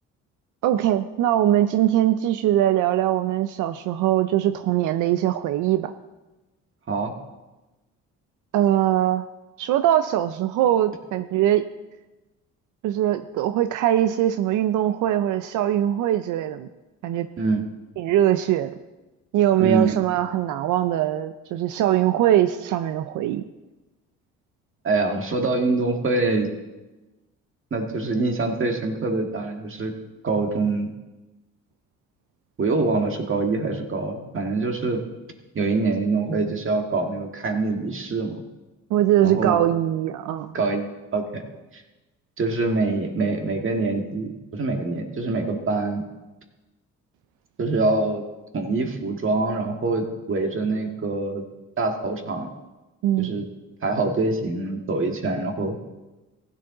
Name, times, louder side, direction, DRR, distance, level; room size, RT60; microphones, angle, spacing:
voice 1, 0.6-5.9 8.5-9.2 9.6-11.6 12.8-16.7 17.0-17.3 18.0-18.7 19.3-23.4 38.9-40.5 53.0-53.3, right 12 dB, 85° right, 10 dB, 0.5 m, -21 dB
voice 2, 19.6-20.0 24.8-26.5 27.7-29.9 30.2-30.9 32.6-35.0 35.5-38.4 39.2-39.6 40.5-41.4 41.7-41.8 42.4-46.0 47.6-48.2 48.5-51.5 51.8-52.5 53.2-53.5 53.8-55.8, right 3 dB, 45° right, 4 dB, 1.8 m, -25 dB
15.5 x 10.0 x 3.8 m, 1.1 s
cardioid pair, 90°, 30 cm